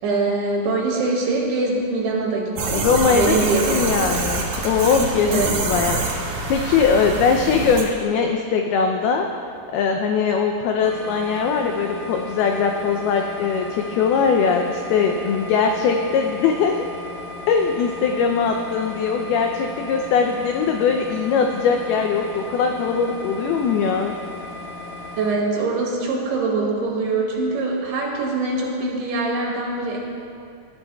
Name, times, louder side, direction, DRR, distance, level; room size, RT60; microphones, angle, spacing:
voice 1, 0.0-4.1 5.3-5.6 25.2-30.0, right 3 dB, 80° right, -3 dB, 4.4 m, -23 dB
sound 1, 2.6-7.8, right 3 dB, 60° right, 2.4 m, -26 dB
voice 2, 2.7-3.4 3.7-9.3 9.7-16.8 17.5-24.1, left 5 dB, 90° left, 3 dB, 2.2 m, -21 dB
sound 2, 10.8-25.4, left 2 dB, 70° left, 2.9 m, -36 dB
21.0 x 12.5 x 2.3 m, 2.5 s
omnidirectional pair, 5.2 m